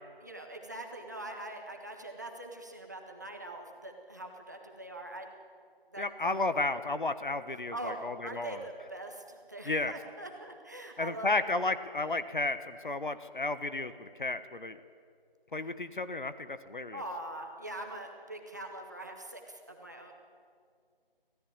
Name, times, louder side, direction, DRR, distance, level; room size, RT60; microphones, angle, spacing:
voice 1, 0.2-5.3 5.9-6.3 7.7-8.0 8.2-11.4 15.6-15.7 16.9-20.1, right 1 dB, 20° right, 2 dB, 1.4 m, -43 dB
voice 2, 6.0-8.6 9.6-9.9 11.0-14.8 15.5-17.0, left 2 dB, 55° left, 12 dB, 1.3 m, -33 dB
25.5 x 17.0 x 8.9 m, 2.3 s
figure-of-eight pair, 180°, 29 cm